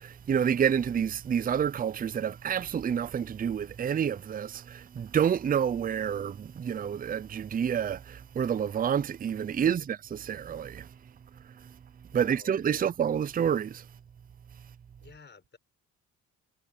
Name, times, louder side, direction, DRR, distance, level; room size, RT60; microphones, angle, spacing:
voice 1, 0.0-10.9 11.6-11.7 12.1-13.8, right 8 dB, 30° right, 0.5 m, -28 dB
voice 2, 12.1-12.9 15.0-15.6, left 5 dB, 35° left, 5.1 m, -52 dB
cardioid pair, 90°, 30 cm